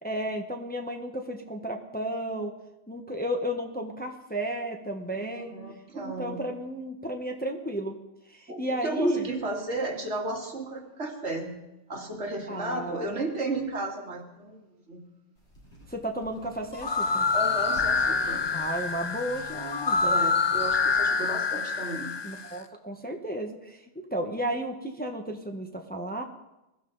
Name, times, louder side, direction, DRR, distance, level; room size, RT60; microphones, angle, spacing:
voice 1, 0.0-2.5 2.9-5.6 6.0-8.0 8.3-9.3 12.5-13.2 15.9-17.3 18.5-20.2 22.2-26.2, equal, 10° left, 3 dB, 1.1 m, -33 dB
voice 2, 5.2-6.4 8.5-11.5 11.9-15.0 17.3-18.5 20.0-22.1 24.2-24.3, right 2 dB, 70° right, 1 dB, 2.4 m, -34 dB
sound 1, 15.4-21.0, equal, 65° left, 3.7 m, -51 dB
sound 2, 16.7-22.5, left 4 dB, 35° left, 0.4 m, -26 dB
21.5 x 12.5 x 4.0 m, 0.95 s
omnidirectional pair, 1.2 m